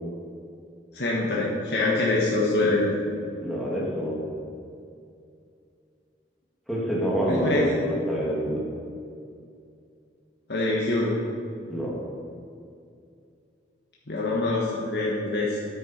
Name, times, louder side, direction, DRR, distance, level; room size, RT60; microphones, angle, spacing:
voice 1, 0.9-3.0 7.3-7.7 10.5-11.2 14.1-15.6, left 2 dB, 65° left, -5 dB, 1.5 m, -24 dB
voice 2, 3.4-4.2 6.7-8.6 11.7-11.9, equal, ahead, -6 dB, 2.4 m, -27 dB
10.0 x 9.0 x 4.6 m, 2.4 s
head